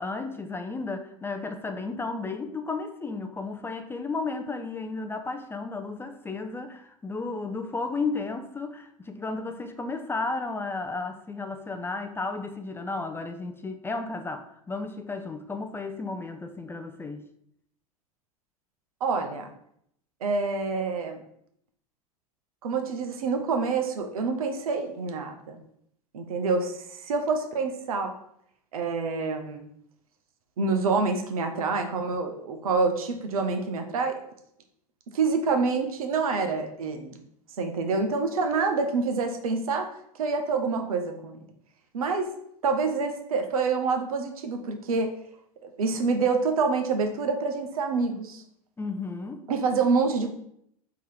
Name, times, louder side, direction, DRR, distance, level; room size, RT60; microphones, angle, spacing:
voice 1, 0.0-17.2 48.8-49.4, left 3 dB, 10° left, 6 dB, 0.4 m, -33 dB
voice 2, 19.0-19.5 20.2-21.2 22.6-25.6 26.1-28.1 28.7-29.6 30.6-34.2 35.1-37.2 37.6-39.9 40.1-41.4 41.9-42.3 42.6-45.1 45.8-48.4 49.5-50.3, right 4 dB, 75° right, 5 dB, 0.7 m, -27 dB
3.7 x 2.9 x 4.7 m, 0.72 s
hypercardioid pair, 90°, 18 cm